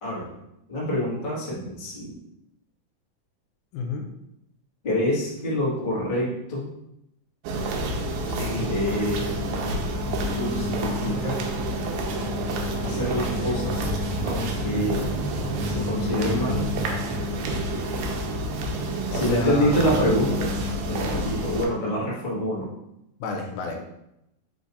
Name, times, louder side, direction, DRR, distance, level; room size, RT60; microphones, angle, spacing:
voice 1, 0.0-0.4 0.7-2.2 4.8-6.7 8.6-9.4 10.3-11.4 12.8-14.0 14.2-15.1 15.6-16.6 19.1-20.5 20.9-22.7, equal, 35° left, -7 dB, 0.7 m, -26 dB
voice 2, 3.7-4.1 8.3-8.7 19.1-19.7 23.2-23.8, left 4 dB, 80° left, 3 dB, 2.0 m, -31 dB
sound 1, 7.4-21.7, equal, 85° right, 2.1 m, -28 dB
5.0 x 2.4 x 4.0 m, 0.83 s
omnidirectional pair, 3.5 m